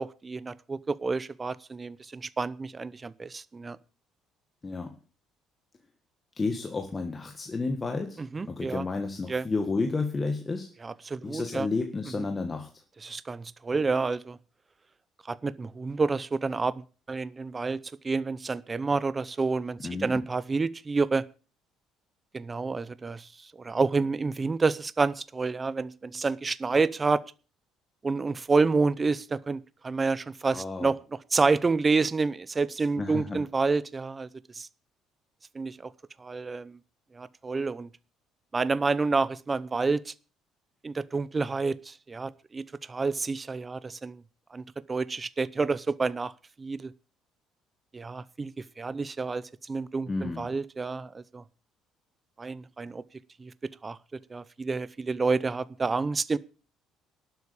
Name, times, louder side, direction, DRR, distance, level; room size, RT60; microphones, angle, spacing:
voice 1, 0.0-3.8 8.2-8.8 9.3-9.4 10.8-11.7 13.0-14.4 15.3-17.8 18.0-21.2 22.3-27.2 28.0-31.0 31.3-34.3 34.5-34.7 35.5-35.9 36.2-36.8 37.1-37.9 38.5-40.1 40.8-44.2 44.5-44.6 44.9-46.3 46.6-46.9 47.9-51.4 52.4-53.0 53.4-53.5 53.8-54.0 54.3-56.4, right 4 dB, 20° right, 0.7 m, -29 dB
voice 2, 6.4-10.7 11.2-12.7 19.8-20.2 30.5-30.9 33.0-33.4 50.1-50.5, left 3 dB, 20° left, 1.7 m, -31 dB
12.0 x 8.2 x 8.6 m
cardioid pair, 135°, 0 cm